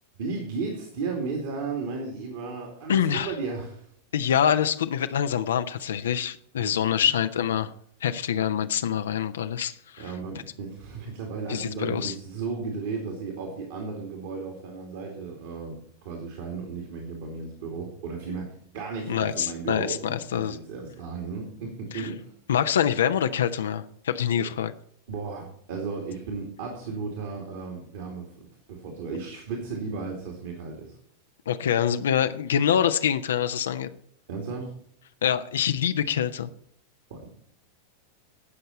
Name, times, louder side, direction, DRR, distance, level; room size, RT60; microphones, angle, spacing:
voice 1, 0.2-3.9 6.6-7.1 10.0-22.3 25.1-30.9 34.3-34.7 37.1-37.3, right 4 dB, 55° right, 0 dB, 2.7 m, -35 dB
voice 2, 2.9-3.3 4.1-7.7 8.0-10.0 11.5-12.1 19.1-20.6 21.9-22.1 22.5-24.7 31.5-33.9 35.2-36.5, left 9 dB, 65° left, 9 dB, 0.7 m, -25 dB
18.5 x 6.7 x 4.3 m, 0.63 s
figure-of-eight pair, 90°, 0 cm